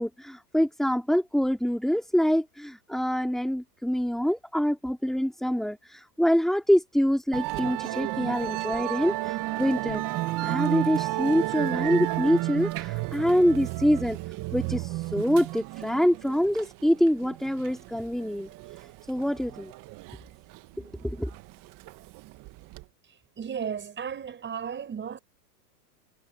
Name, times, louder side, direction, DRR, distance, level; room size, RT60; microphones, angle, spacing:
voice 1, 0.0-10.0 10.4-14.2 14.5-18.5 19.1-19.7 21.0-21.3, equal, ahead, 3.8 m, -25 dB
Musical instrument, 7.3-22.8, right 18 dB, 40° right, 1.9 m, -32 dB
voice 2, 23.1-25.2, right 7 dB, 20° right, 6.2 m, -35 dB
hypercardioid pair, 125°, 50 cm